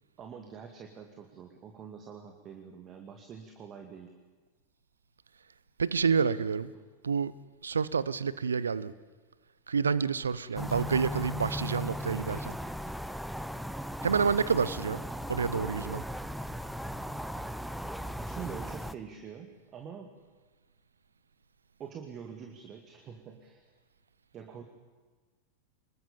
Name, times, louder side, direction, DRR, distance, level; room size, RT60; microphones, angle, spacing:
voice 1, 0.2-4.1 18.2-20.2 21.8-23.7 24.3-24.6, right 7 dB, 30° right, 4 dB, 2.3 m, -45 dB
voice 2, 5.8-6.7 7.0-7.3 7.6-8.9 9.7-12.5 14.0-15.0 15.3-16.0, right 5 dB, 70° right, 18 dB, 0.9 m, -28 dB
sound 1, 10.6-19.0, equal, ahead, 0.9 m, -37 dB
25.5 x 21.5 x 7.4 m, 1.4 s
figure-of-eight pair, 90°, 0 cm